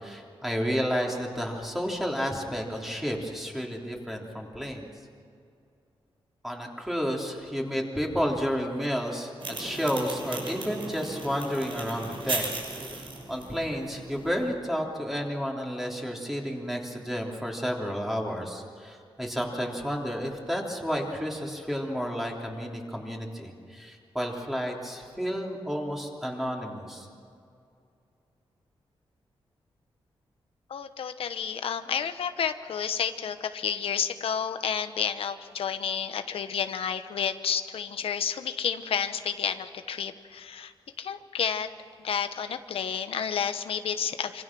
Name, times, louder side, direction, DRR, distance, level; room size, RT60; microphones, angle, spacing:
voice 1, 0.0-4.9 6.4-9.3 9.6-12.4 12.7-27.1, equal, 5° right, -1 dB, 3.3 m, -31 dB
sound 1, 9.4-14.5, right 3 dB, 65° right, 6.3 m, -37 dB
voice 2, 30.7-40.7 41.0-41.7 42.0-44.4, left 7 dB, 80° left, 9 dB, 1.0 m, -30 dB
26.0 x 26.0 x 6.1 m, 2.4 s
wide cardioid pair, 150°, 10 cm